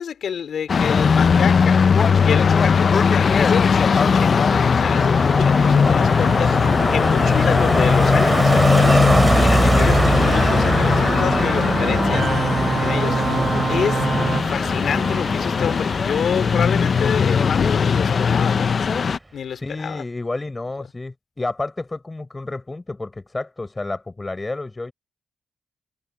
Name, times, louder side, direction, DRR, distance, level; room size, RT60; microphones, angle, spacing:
voice 1, 0.0-1.8 2.2-13.2 13.7-14.1 14.5-18.6 19.3-20.0, left 8 dB, 70° left, 2.5 m, -28 dB
sound 1, 0.7-19.2, left 6 dB, 45° left, 0.5 m, -19 dB
Car passing by, 3.1-17.9 18.1-18.5, right 2 dB, 15° right, 2.5 m, -24 dB
sound 2, 9.9-16.0, right 6 dB, 50° right, 3.8 m, -26 dB
voice 2, 10.5-11.0 12.6-13.1 19.5-24.9, left 2 dB, 20° left, 4.5 m, -31 dB
cardioid pair, 110°, 0 cm